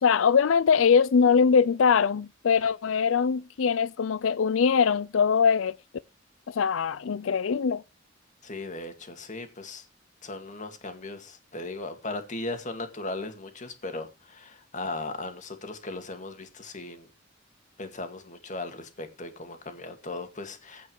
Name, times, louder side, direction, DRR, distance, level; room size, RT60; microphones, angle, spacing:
voice 1, 0.0-5.8 6.5-7.8, left 6 dB, 85° left, 0.5 m, -22 dB
voice 2, 8.4-9.8 10.2-17.1 17.8-20.9, left 2 dB, 40° left, 2.2 m, -37 dB
16.0 x 5.3 x 4.6 m
head